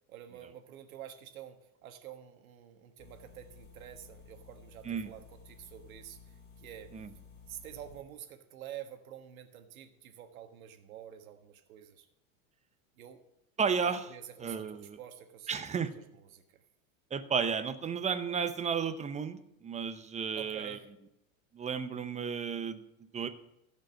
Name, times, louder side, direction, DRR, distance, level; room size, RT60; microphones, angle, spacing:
voice 1, 0.1-6.9 7.5-12.1 13.0-13.2 13.8-15.9 16.1-16.6 20.4-20.9, right 10 dB, 85° right, 7 dB, 1.5 m, -48 dB
sound 1, 3.0-8.0, left 5 dB, 25° left, 5.2 m, -55 dB
voice 2, 13.6-14.1 14.4-15.0 15.5-15.9 17.1-20.8 21.5-22.8 23.1-23.3, right 6 dB, 15° right, 11 dB, 0.7 m, -33 dB
15.5 x 5.3 x 6.3 m, 0.85 s
supercardioid pair, 120°, 41 cm